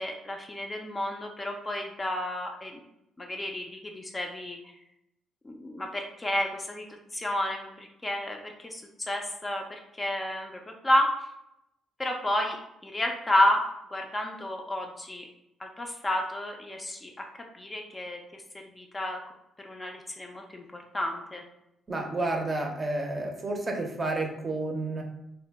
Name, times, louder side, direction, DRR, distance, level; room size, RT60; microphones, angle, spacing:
voice 1, 0.0-2.8 3.2-4.6 5.4-6.9 7.1-11.1 12.0-12.6 12.8-13.6 13.9-15.3 15.6-17.3 17.5-18.4 18.8-19.2 19.6-21.4, left 1 dB, 20° left, 2 dB, 0.4 m, -31 dB
voice 2, 21.9-25.0, right 2 dB, 30° right, 2 dB, 0.6 m, -30 dB
2.9 x 2.0 x 3.3 m, 0.83 s
cardioid pair, 90°, 0 cm